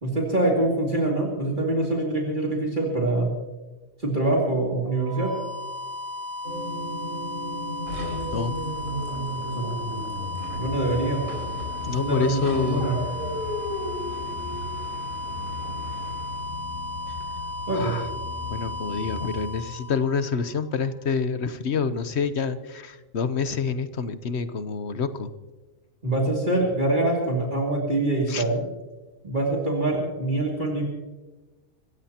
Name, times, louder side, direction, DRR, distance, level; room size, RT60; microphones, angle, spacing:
voice 1, 0.0-3.3 4.0-5.4 9.6-9.8 10.6-11.3 11.8-13.0 17.7-17.9 26.0-28.6 29.2-30.9, right 2 dB, 35° right, -2 dB, 2.7 m, -24 dB
sound 1, 4.9-20.7, left 2 dB, 10° left, 1.3 m, -35 dB
sound 2, 6.4-19.2, left 1 dB, 65° right, 5.9 m, -36 dB
sound 3, 7.9-16.6, left 1 dB, 85° right, 6.0 m, -38 dB
voice 2, 11.8-12.9 17.1-17.2 17.7-18.1 18.5-25.3 28.3-28.4, left 5 dB, 60° left, 11 dB, 1.0 m, -27 dB
26.0 x 14.5 x 2.9 m, 1.2 s
omnidirectional pair, 1.4 m